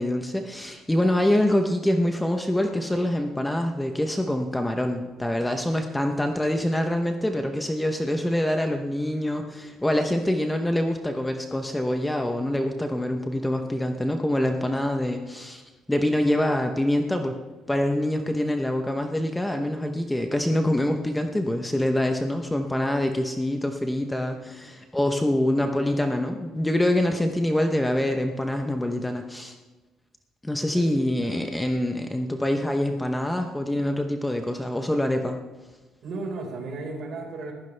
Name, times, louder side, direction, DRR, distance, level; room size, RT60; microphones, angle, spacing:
voice 1, 0.0-15.6 15.9-17.4 17.7-29.5 30.4-35.4, left 1 dB, 5° left, 4 dB, 0.8 m, -25 dB
voice 2, 24.8-25.1 30.7-31.5 36.0-37.5, right 3 dB, 50° right, 1 dB, 4.6 m, -36 dB
20.5 x 15.0 x 3.4 m, 1.2 s
cardioid pair, 145°, 0 cm